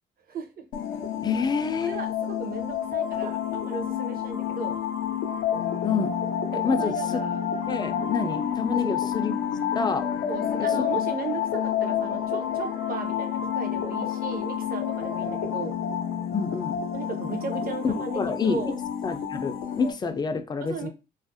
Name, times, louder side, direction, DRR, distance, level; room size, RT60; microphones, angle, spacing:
sound 1, 0.7-19.9, left 9 dB, 85° left, 0.5 m, -29 dB
voice 1, 1.2-2.0 5.8-6.1 6.5-7.2 7.7-9.3 9.8-10.1 10.6-10.9 15.2-15.3 16.3-16.7 17.8-18.6 19.0-20.9, left 5 dB, 20° left, 8 dB, 0.3 m, -28 dB
voice 2, 1.8-4.8 6.5-7.4 8.7-9.0 10.3-15.8 16.9-18.7 20.7-20.9, right 5 dB, 50° right, 5 dB, 0.6 m, -36 dB
2.4 x 2.0 x 2.5 m, 0.28 s
cardioid pair, 90°, 20 cm